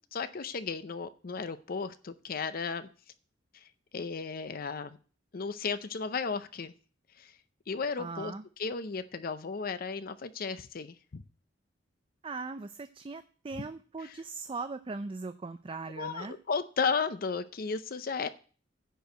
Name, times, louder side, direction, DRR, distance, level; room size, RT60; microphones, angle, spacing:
voice 1, 0.1-2.9 3.5-3.6 3.9-5.0 5.3-6.7 7.2-7.3 7.7-11.2 14.0-14.2 16.0-18.3, left 5 dB, 55° left, 12 dB, 0.6 m, -34 dB
voice 2, 8.0-8.4 12.2-16.3, right 3 dB, 30° right, 10 dB, 0.4 m, -39 dB
10.0 x 4.6 x 8.0 m, 0.39 s
head